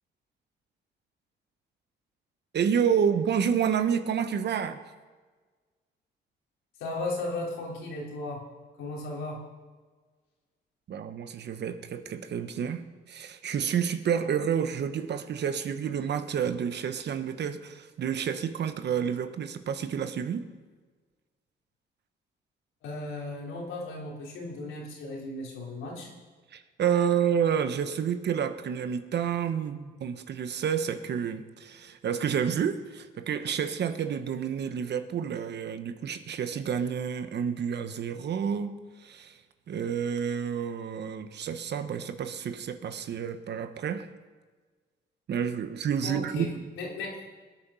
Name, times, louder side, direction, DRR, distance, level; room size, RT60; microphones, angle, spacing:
voice 1, 2.5-4.8 10.9-20.4 26.5-39.4 39.7-44.1 45.3-46.6, right 7 dB, 60° right, 9 dB, 1.1 m, -29 dB
voice 2, 6.8-8.4 8.8-9.4 22.8-26.1 46.0-47.2, left 2 dB, 90° left, -2 dB, 3.5 m, -36 dB
19.5 x 9.1 x 5.7 m, 1.4 s
cardioid pair, 90°, 20 cm